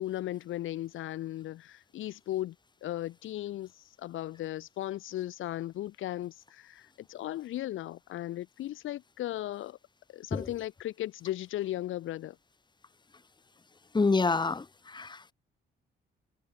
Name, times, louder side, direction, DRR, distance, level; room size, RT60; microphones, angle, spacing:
voice 1, 0.0-2.5 2.8-9.8 10.1-12.4, left 14 dB, 80° left, 3.4 m, -36 dB
voice 2, 13.9-14.6 14.9-15.3, left 4 dB, 20° left, 1.4 m, -27 dB
cardioid pair, 90°, 20 cm